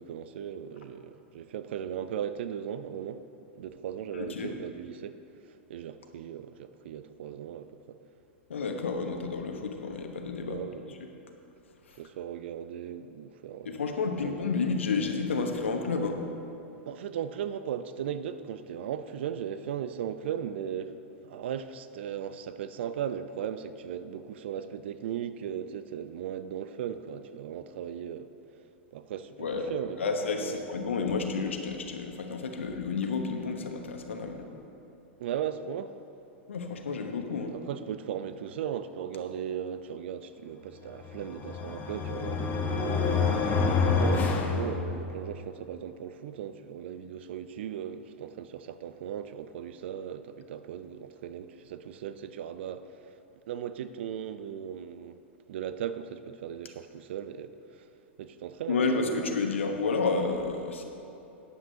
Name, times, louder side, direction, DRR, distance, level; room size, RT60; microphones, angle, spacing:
voice 1, 0.0-3.2 3.6-5.2 5.5-8.0 10.5-10.9 12.0-14.4 16.8-21.0 21.2-28.3 28.9-30.1 30.4-30.6 35.2-36.0 37.5-43.6 43.9-53.2 53.5-55.2 55.5-57.9 58.2-59.4, right 9 dB, 65° right, 0.5 m, -37 dB
voice 2, 4.1-4.6 8.5-10.6 10.9-11.0 11.9-12.0 13.6-16.2 29.4-29.7 30.0-34.5 36.5-37.5 58.7-60.8, left 4 dB, 80° left, 1.1 m, -30 dB
sound 1, 41.0-45.3, left 4 dB, 25° left, 1.0 m, -28 dB
14.5 x 9.7 x 2.8 m
hypercardioid pair, 100°, 7 cm